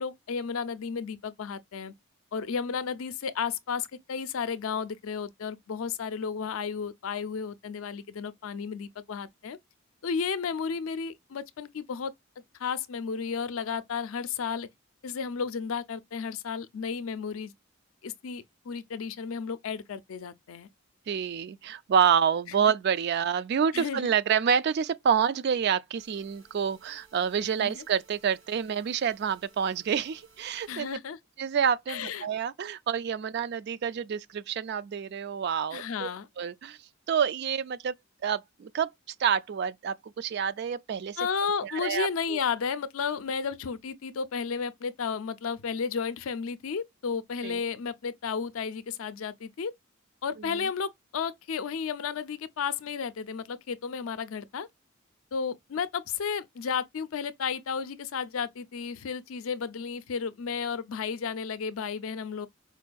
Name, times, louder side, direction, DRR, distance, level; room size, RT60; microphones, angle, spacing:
voice 1, 0.0-1.9 2.3-9.6 10.0-12.1 12.6-14.7 15.0-17.5 18.0-20.7 23.7-24.1 27.6-27.8 30.7-31.2 31.9-32.3 35.7-36.3 41.2-49.7 50.2-54.7 55.3-62.5, left 6 dB, 80° left, 0.4 m, -33 dB
voice 2, 21.1-30.9 31.4-36.1 36.4-36.8 37.1-37.9 38.2-38.9 39.2-41.2 41.6-42.4 47.4-47.6 50.4-50.7, right 7 dB, 55° right, 0.3 m, -28 dB
sound 1, 26.0-31.0, right 4 dB, 70° right, 2.0 m, -60 dB
4.5 x 2.2 x 2.4 m
head